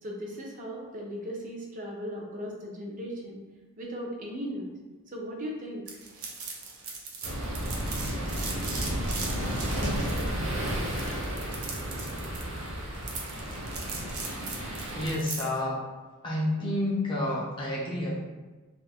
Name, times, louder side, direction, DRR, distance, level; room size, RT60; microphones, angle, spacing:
voice 1, 0.0-3.4 3.8-4.7 5.1-5.8, equal, 35° right, -1 dB, 0.5 m, -37 dB
sound 1, 5.9-15.6, right 4 dB, 90° right, 0.6 m, -39 dB
sound 2, 7.2-15.1, equal, 60° right, 0.8 m, -32 dB
voice 2, 14.9-15.8 16.2-18.2, left 1 dB, 20° left, -5 dB, 0.4 m, -29 dB
2.5 x 2.4 x 3.4 m, 1.3 s
head